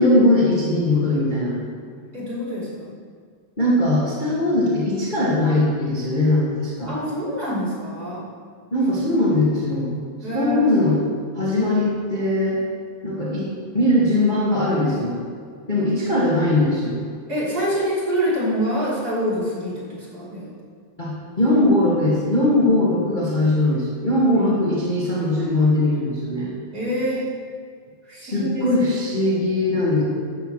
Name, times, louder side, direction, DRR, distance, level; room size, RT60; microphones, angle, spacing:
voice 1, 0.0-1.6 3.6-6.9 8.7-9.9 10.3-11.0 11.3-12.6 13.0-13.5 13.7-15.2 15.7-17.0 21.0-26.5 28.2-30.0, left 1 dB, 15° left, -7 dB, 1.7 m, -20 dB
voice 2, 2.1-2.9 6.9-8.2 9.0-9.2 10.2-10.6 17.3-20.5 24.3-24.5 26.7-27.3 28.1-28.7 29.2-29.3, equal, 25° right, -9 dB, 4.0 m, -26 dB
15.5 x 12.0 x 3.3 m, 2.1 s
omnidirectional pair, 3.9 m